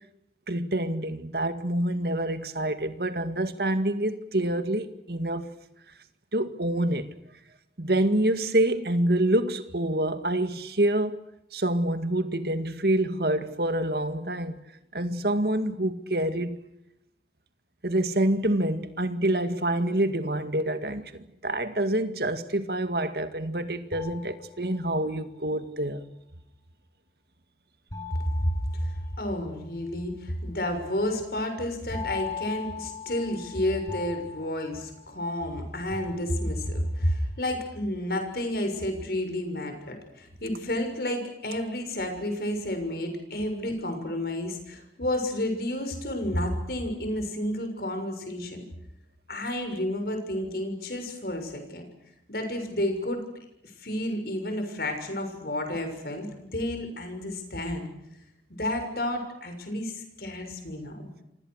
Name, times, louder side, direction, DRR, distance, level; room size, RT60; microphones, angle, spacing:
voice 1, 0.5-5.5 6.3-7.1 7.8-11.2 11.5-14.6 14.9-16.6 17.8-26.0, right 1 dB, 60° right, 2.1 m, -27 dB
sound 1, 23.9-25.1 27.9-29.5 31.9-35.5 35.9-36.8, left 6 dB, 20° left, 6.4 m, -40 dB
voice 2, 28.4-48.6 49.3-51.9 52.3-53.2 53.8-57.8 58.6-61.1, left 1 dB, 55° left, 6.6 m, -31 dB
29.0 x 25.5 x 6.6 m
head